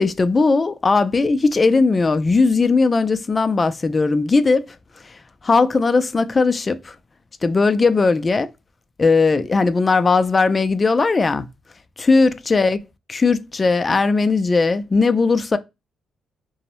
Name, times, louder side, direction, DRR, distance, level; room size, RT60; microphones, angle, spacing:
voice 1, 0.0-4.8 5.0-5.1 5.4-7.0 7.4-8.5 9.0-11.5 12.0-12.8 13.1-15.6, left 4 dB, 30° left, 0.3 m, -18 dB
2.6 x 2.0 x 2.9 m
cardioid pair, 90°, 0 cm